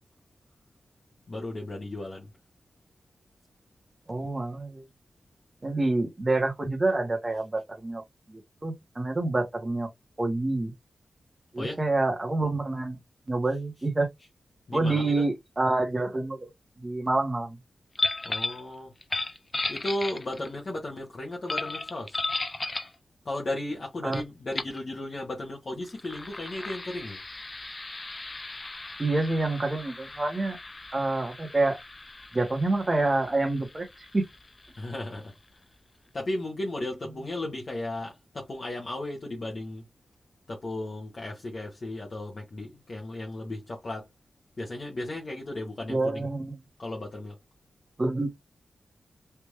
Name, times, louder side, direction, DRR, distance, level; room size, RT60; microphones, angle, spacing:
voice 1, 1.3-2.3 11.6-11.8 14.7-15.2 18.2-18.9 19.7-22.2 23.2-27.2 34.8-35.3 36.1-39.8 40.5-44.1 44.6-46.3 46.8-47.4, left 1 dB, 40° left, 0.9 m, -35 dB
voice 2, 4.1-4.8 5.6-8.0 8.3-9.9 10.2-10.7 11.5-13.0 13.3-14.1 14.7-16.5 16.8-17.6 24.0-24.2 29.0-30.6 30.9-31.8 32.3-34.2 45.9-46.6 48.0-48.3, right 2 dB, 25° right, 1.1 m, -27 dB
sound 1, 17.9-18.6 19.0-20.5 21.5-22.9 24.1-24.2 24.5-24.8 25.8-35.1, left 2 dB, 25° left, 0.4 m, -35 dB
3.4 x 2.5 x 3.0 m
wide cardioid pair, 140°, 0 cm